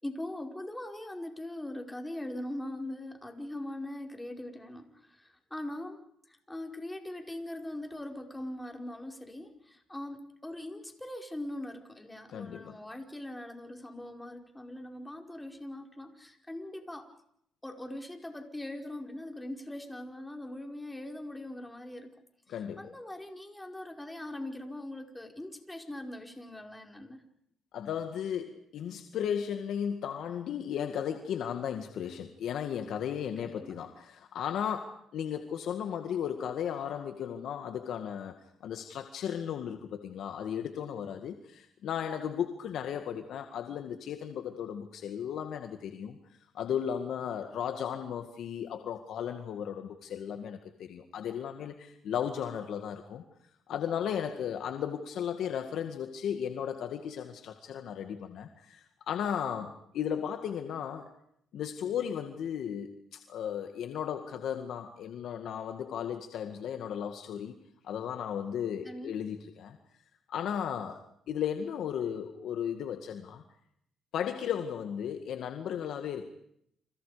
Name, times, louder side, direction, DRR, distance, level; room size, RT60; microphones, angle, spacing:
voice 1, 0.0-6.0 6.3-17.1 17.6-22.1 22.8-27.2 33.4-33.7 68.8-69.2, left 1 dB, 10° left, 3 dB, 5.1 m, -41 dB
voice 2, 12.3-12.8 22.5-22.9 27.7-38.4 38.6-46.2 46.5-53.2 53.7-61.1 61.5-67.6 67.8-69.8 70.3-73.4 74.1-76.2, left 8 dB, 75° left, 6 dB, 2.0 m, -35 dB
30.0 x 27.5 x 5.1 m, 0.71 s
cardioid pair, 90°, 0 cm